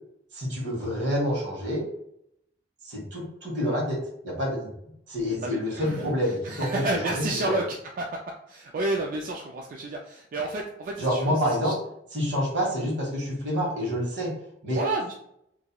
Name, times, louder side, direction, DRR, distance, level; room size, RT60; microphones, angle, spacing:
voice 1, 0.3-1.9 2.8-4.0 4.2-7.5 11.0-11.8 12.1-14.3 14.6-14.8, equal, 80° right, -3 dB, 1.3 m, -28 dB
voice 2, 5.4-6.0 6.5-7.6 8.0-8.1 8.5-11.3 11.6-11.7 14.7-15.1, right 2 dB, 50° right, 0 dB, 0.3 m, -30 dB
2.9 x 2.6 x 2.2 m, 0.75 s
head